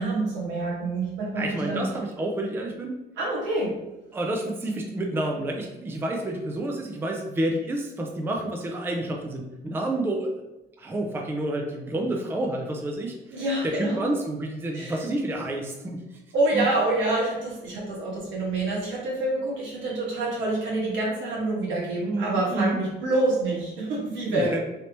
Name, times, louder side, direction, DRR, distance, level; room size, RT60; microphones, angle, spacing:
voice 1, 0.0-1.9 3.2-3.8 13.3-14.1 14.7-15.0 16.3-24.6, right 2 dB, 85° right, -5 dB, 1.4 m, -27 dB
voice 2, 1.4-3.0 4.1-10.3 10.8-16.0 16.5-16.6 22.1-22.8 24.3-24.6, right 1 dB, 10° right, 1 dB, 0.4 m, -29 dB
3.3 x 2.8 x 2.9 m, 0.99 s
cardioid pair, 135°, 19 cm